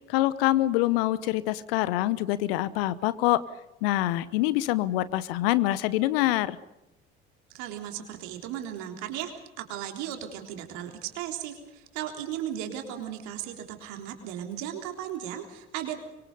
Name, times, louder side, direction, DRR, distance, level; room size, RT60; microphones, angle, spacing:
voice 1, 0.1-3.4 3.8-6.6, left 16 dB, 65° left, 17 dB, 1.0 m, -25 dB
voice 2, 7.5-15.9, right 10 dB, 60° right, 5 dB, 3.7 m, -36 dB
25.0 x 23.0 x 5.4 m, 0.93 s
figure-of-eight pair, 55°, 31 cm